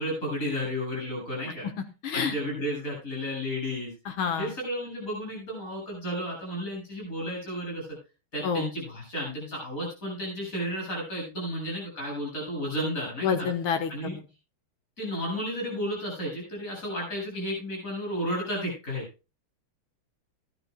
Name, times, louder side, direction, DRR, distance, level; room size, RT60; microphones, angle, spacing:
voice 1, 0.0-1.7 2.1-3.9 4.4-8.0 8.3-13.3 13.9-14.2 15.0-19.1, equal, 40° left, -1 dB, 8.2 m, -32 dB
voice 2, 2.0-2.3 4.1-4.5 8.4-8.7 13.2-14.2, left 6 dB, 80° left, 7 dB, 2.1 m, -28 dB
18.5 x 12.0 x 2.3 m, 0.30 s
omnidirectional pair, 2.2 m